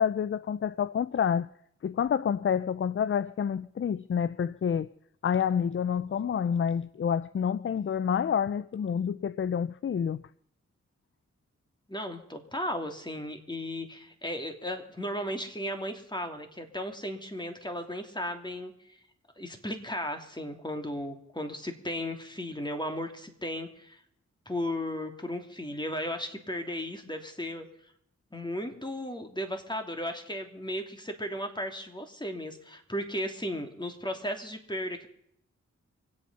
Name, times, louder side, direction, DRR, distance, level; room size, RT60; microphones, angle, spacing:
voice 1, 0.0-1.5 1.8-4.9 5.2-10.2, left 7 dB, 40° left, 0.5 m, -28 dB
voice 2, 11.9-18.7 19.4-24.0 24.5-27.7 28.3-35.1, left 1 dB, 15° left, 3.0 m, -35 dB
24.5 x 8.6 x 5.6 m
cardioid pair, 45°, 30 cm